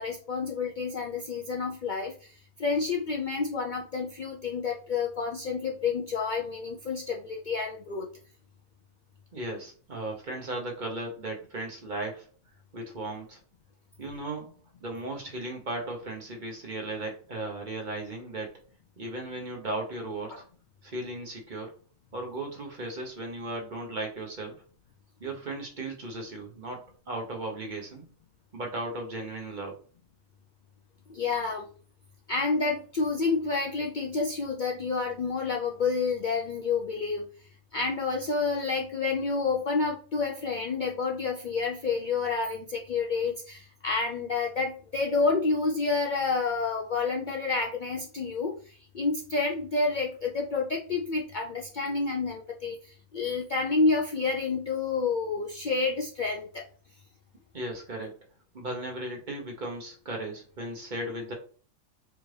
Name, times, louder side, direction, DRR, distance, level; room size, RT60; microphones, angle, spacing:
voice 1, 0.0-2.3 2.6-8.1 31.1-31.7 32.3-37.3 37.7-48.5 48.9-52.8 53.1-56.6, left 4 dB, 90° left, 0 dB, 0.4 m, -29 dB
voice 2, 9.3-12.2 12.7-13.4 14.0-14.5 14.8-18.5 19.0-20.4 20.8-21.7 22.1-24.6 25.2-28.1 28.5-29.8 57.5-58.2 58.5-61.3, right 2 dB, 40° right, 0 dB, 0.9 m, -36 dB
4.7 x 2.5 x 3.2 m, 0.41 s
omnidirectional pair, 1.4 m